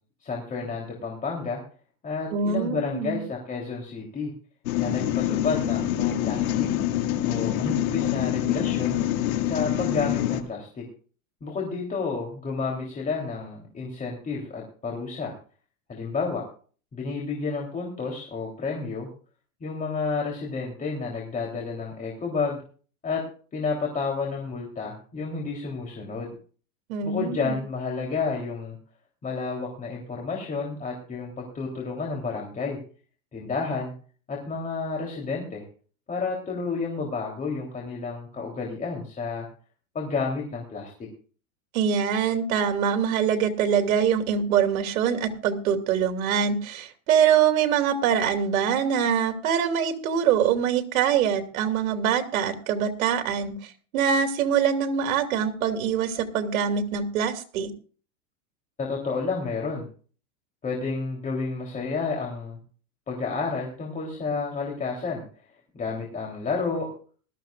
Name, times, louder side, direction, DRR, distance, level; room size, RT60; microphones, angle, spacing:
voice 1, 0.2-1.6 2.0-4.3 4.8-6.7 7.2-9.0 9.4-10.8 11.4-15.3 15.9-16.4 16.9-19.1 19.6-22.6 23.0-23.2 23.5-26.3 27.0-28.8 29.2-32.8 33.3-33.9 34.3-35.6 36.1-39.5 40.0-41.1 58.8-59.9 60.6-62.6 63.1-65.2 65.7-66.9, left 4 dB, 20° left, -1 dB, 3.4 m, -30 dB
voice 2, 2.3-3.2 26.9-27.5 41.7-53.5 53.9-57.7, right 8 dB, 80° right, 5 dB, 2.8 m, -24 dB
sound 1, 4.7-10.4, left 12 dB, 85° left, 2.1 m, -25 dB
20.0 x 13.5 x 2.5 m, 0.40 s
supercardioid pair, 155°, 42 cm